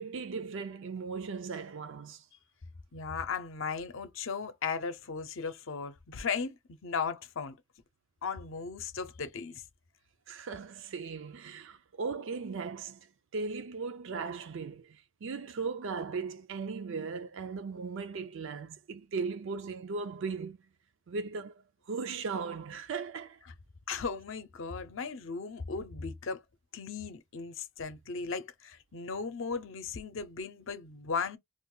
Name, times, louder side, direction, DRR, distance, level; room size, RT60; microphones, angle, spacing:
voice 1, 0.0-2.2 10.3-13.1 13.3-20.6 21.1-21.6 21.9-23.4, right 4 dB, 65° right, 0.4 m, -37 dB
voice 2, 2.9-7.6 8.2-9.6 23.9-26.4 26.7-31.4, left 5 dB, 65° left, 0.6 m, -36 dB
2.5 x 2.4 x 3.7 m
head